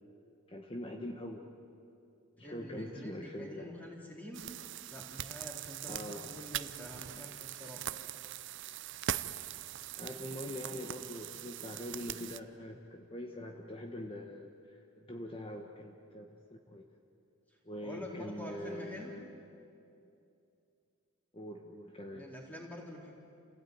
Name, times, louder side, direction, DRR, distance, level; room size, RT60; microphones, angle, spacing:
voice 1, 0.5-1.4 2.4-3.9 5.9-6.3 10.0-16.9 17.6-19.2 21.3-22.3, left 1 dB, 25° left, 2 dB, 1.3 m, -43 dB
voice 2, 2.4-4.5 4.9-7.9 17.8-19.1 22.1-23.1, left 1 dB, 5° left, -2 dB, 3.8 m, -47 dB
sound 1, 4.3-12.4, right 11 dB, 55° right, 0.6 m, -41 dB
28.5 x 17.0 x 9.4 m, 2.6 s
head